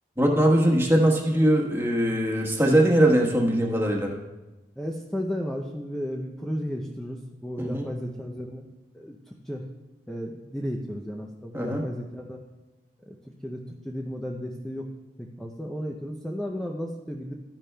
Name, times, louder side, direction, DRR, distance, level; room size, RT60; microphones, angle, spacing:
voice 1, 0.2-4.1 7.6-7.9 11.5-11.8, right 1 dB, 15° right, 0 dB, 1.2 m, -21 dB
voice 2, 4.8-9.7 10.1-12.4 13.1-14.9 15.2-17.3, equal, 5° left, 0 dB, 0.5 m, -34 dB
12.5 x 10.5 x 2.2 m, 1.1 s
head